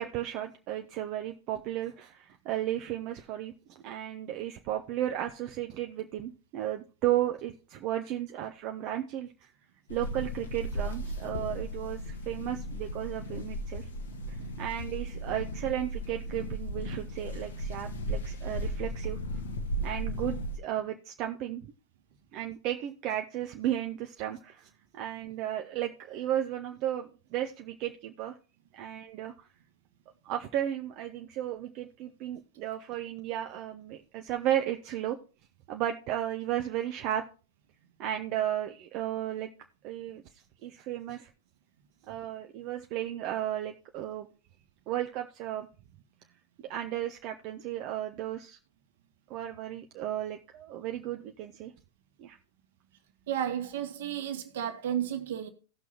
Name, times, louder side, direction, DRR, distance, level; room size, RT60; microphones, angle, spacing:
voice 1, 0.0-3.5 3.8-9.5 9.9-13.9 14.3-19.2 19.8-21.7 22.3-28.3 28.7-29.5 30.2-35.2 35.7-37.2 38.0-39.5 39.8-40.2 40.6-41.3 42.1-44.3 44.9-45.7 46.7-48.6 49.3-51.7 52.2-52.4, right 12 dB, 40° right, 0.7 m, -34 dB
sound 1, 9.9-20.6, equal, 70° left, 1.7 m, -36 dB
voice 2, 53.3-55.5, right 10 dB, 60° right, 1.6 m, -32 dB
17.5 x 6.1 x 2.9 m
figure-of-eight pair, 90°, 0 cm